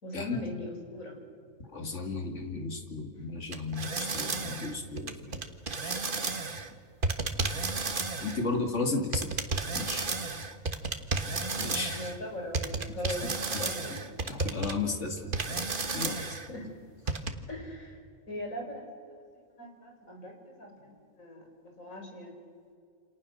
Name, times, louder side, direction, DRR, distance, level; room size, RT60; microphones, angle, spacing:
voice 1, 0.0-1.2 11.9-13.3 13.6-14.0 16.1-16.7 17.1-18.0 18.3-18.9 19.6-22.4, left 1 dB, 85° left, 2 dB, 5.2 m, -40 dB
voice 2, 1.7-5.4 5.8-5.9 8.2-9.5 9.7-10.1 11.6-12.0 14.2-15.6 15.9-16.2, left 3 dB, 60° left, 3 dB, 2.8 m, -34 dB
sound 1, 3.5-6.7 7.0-8.4 9.1-12.2 12.5-14.7 15.3-16.5 17.1-17.3, right 3 dB, 40° right, 1.6 m, -32 dB
28.5 x 27.0 x 6.6 m, 2.3 s
omnidirectional pair, 1.4 m